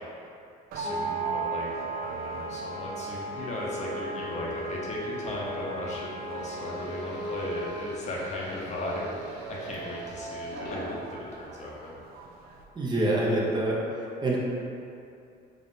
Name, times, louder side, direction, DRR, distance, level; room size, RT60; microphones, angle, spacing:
voice 1, 0.7-11.0 11.3-11.9, left 1 dB, 45° left, -5 dB, 0.8 m, -36 dB
sound 1, 0.7-12.6, right 6 dB, 65° right, 0.4 m, -40 dB
sound 2, 0.8-7.7, right 1 dB, 10° left, 0.7 m, -36 dB
sound 3, 6.4-11.9 12.3-13.1, left 1 dB, 70° left, 1.2 m, -46 dB
voice 2, 12.8-13.8 14.2-14.4, right 1 dB, 25° right, -5 dB, 0.7 m, -25 dB
3.6 x 2.4 x 4.0 m, 2.6 s
cardioid pair, 110°, 17 cm